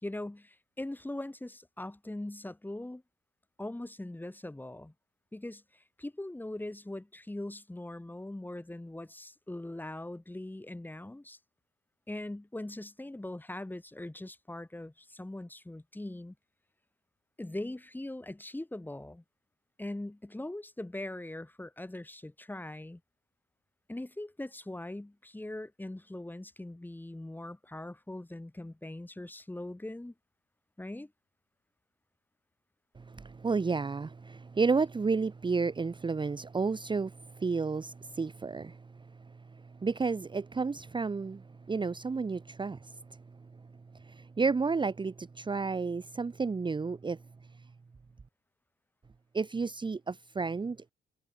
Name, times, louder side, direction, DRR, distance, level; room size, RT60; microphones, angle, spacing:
voice 1, 0.0-3.0 3.6-4.9 5.3-11.4 12.1-16.3 17.4-19.2 19.8-23.0 23.9-30.1 30.8-31.1, left 1 dB, 10° left, 2.7 m, -41 dB
voice 2, 33.0-43.0 43.9-47.2 49.3-50.9, right 4 dB, 25° right, 1.0 m, -32 dB
cardioid pair, 90°, 20 cm